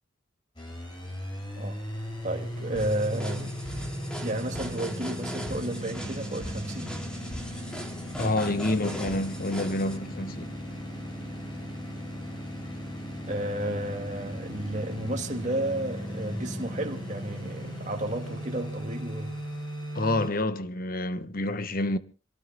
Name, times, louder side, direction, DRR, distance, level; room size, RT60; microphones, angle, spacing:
sound 1, 0.6-20.3, equal, 25° left, 4.9 m, -37 dB
voice 1, 2.2-3.6 4.2-7.0 13.3-19.4, right 1 dB, 40° right, 2.1 m, -32 dB
sound 2, 2.8-10.0, equal, 5° left, 2.8 m, -40 dB
voice 2, 8.2-10.6 19.9-22.0, left 2 dB, 45° left, 1.1 m, -28 dB
27.5 x 18.5 x 2.2 m
head